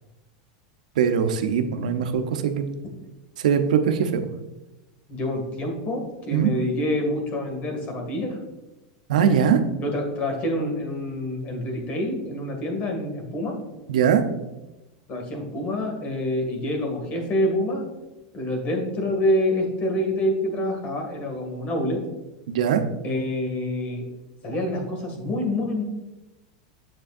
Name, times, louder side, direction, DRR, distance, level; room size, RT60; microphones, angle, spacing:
voice 1, 1.0-2.7 3.4-4.3 6.3-6.5 9.1-9.6 13.9-14.2 22.5-22.8, right 7 dB, 85° right, 7 dB, 0.7 m, -21 dB
voice 2, 5.1-8.4 9.8-13.6 15.1-17.8 18.3-22.0 23.0-24.1 24.4-25.8, left 1 dB, 40° left, 2 dB, 2.1 m, -27 dB
7.5 x 7.5 x 2.6 m, 1.0 s
supercardioid pair, 125°, 4 cm